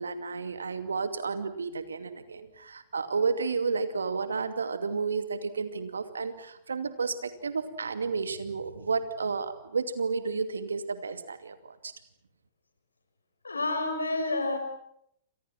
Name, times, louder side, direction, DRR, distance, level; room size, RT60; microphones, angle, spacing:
voice 1, 0.0-11.9, right 4 dB, 80° right, 10 dB, 2.5 m, -32 dB
voice 2, 13.4-14.6, left 2 dB, 85° left, 7 dB, 5.7 m, -29 dB
29.0 x 26.5 x 6.0 m, 0.72 s
figure-of-eight pair, 110°, 0 cm